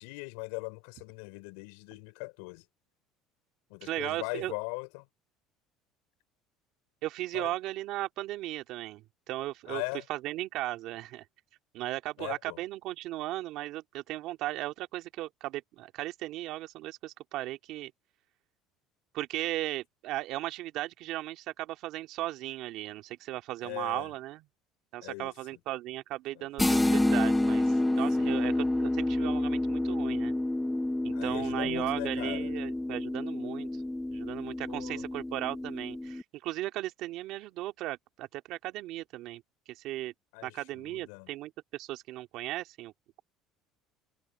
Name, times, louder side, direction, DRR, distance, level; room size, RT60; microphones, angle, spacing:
voice 1, 0.0-2.6 3.7-5.1 7.3-7.5 9.7-10.0 12.2-12.6 23.6-24.1 25.0-25.3 26.4-26.5 28.2-28.4 31.1-32.5 34.7-35.1 40.3-41.3, left 33 dB, 85° left, 5.7 m, -40 dB
voice 2, 3.8-4.5 7.0-9.8 10.1-11.2 11.7-17.9 19.1-24.4 24.9-30.3 31.0-33.8 34.1-39.4 39.7-40.1 40.4-42.9, right 16 dB, 65° right, 2.6 m, -36 dB
sound 1, 26.6-36.2, left 1 dB, 5° left, 1.6 m, -29 dB
cardioid pair, 120°, 0 cm